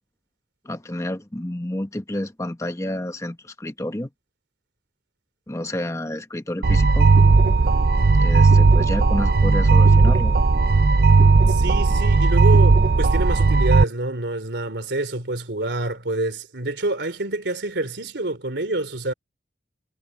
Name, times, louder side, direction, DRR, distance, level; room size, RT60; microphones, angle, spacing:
voice 1, 0.6-4.1 5.5-7.1 8.1-10.3, left 1 dB, 15° left, 1.2 m, -30 dB
sound 1, 6.6-13.8, right 3 dB, 60° right, 0.6 m, -16 dB
voice 2, 11.5-19.1, right 2 dB, 85° right, 3.0 m, -27 dB
head